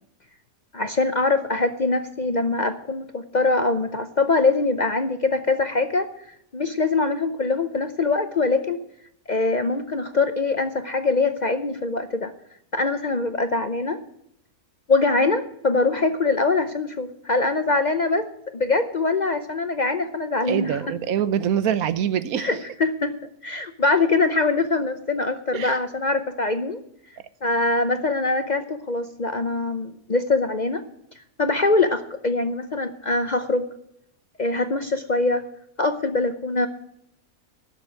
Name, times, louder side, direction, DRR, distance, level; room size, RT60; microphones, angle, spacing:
voice 1, 0.7-6.2 6.5-8.8 9.3-12.3 12.7-14.0 14.9-18.3 18.5-20.8 22.4-23.1 23.4-26.8 27.4-30.8 31.2-33.7 34.4-35.4 35.8-36.7, left 3 dB, 45° left, 8 dB, 0.6 m, -23 dB
voice 2, 20.5-22.5 25.5-25.8, right 9 dB, 80° right, 14 dB, 1.2 m, -24 dB
12.5 x 6.9 x 9.9 m, 0.72 s
omnidirectional pair, 1.5 m